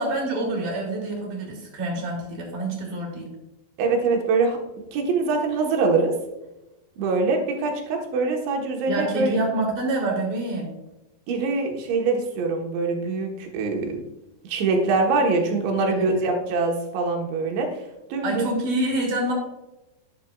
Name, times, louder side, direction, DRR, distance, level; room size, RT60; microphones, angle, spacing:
voice 1, 0.0-3.3 8.9-10.7 15.9-16.3 18.2-19.3, right 2 dB, 50° right, -1 dB, 4.0 m, -27 dB
voice 2, 3.8-4.6 4.9-6.1 7.0-9.4 11.3-14.0 14.4-18.5, right 3 dB, 90° right, 2 dB, 3.7 m, -24 dB
11.0 x 9.7 x 2.4 m, 0.96 s
omnidirectional pair, 5.0 m